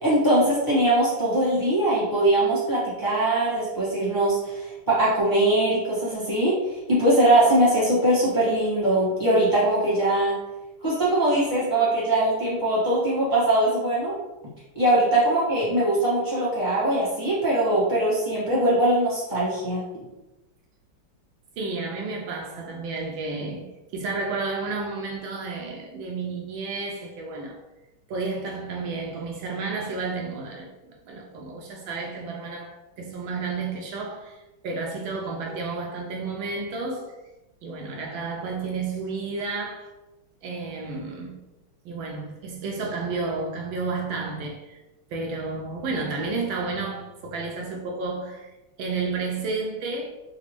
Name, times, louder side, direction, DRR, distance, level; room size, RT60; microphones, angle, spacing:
voice 1, 0.0-6.6 6.9-10.3 10.8-14.1 14.7-19.8, right 1 dB, 15° left, 0.9 m, -21 dB
voice 2, 21.6-27.6 28.1-37.2 37.6-39.9 40.4-41.4 41.8-44.8 45.1-50.1, right 3 dB, 75° right, 1.3 m, -31 dB
4.0 x 2.2 x 2.9 m
omnidirectional pair, 2.3 m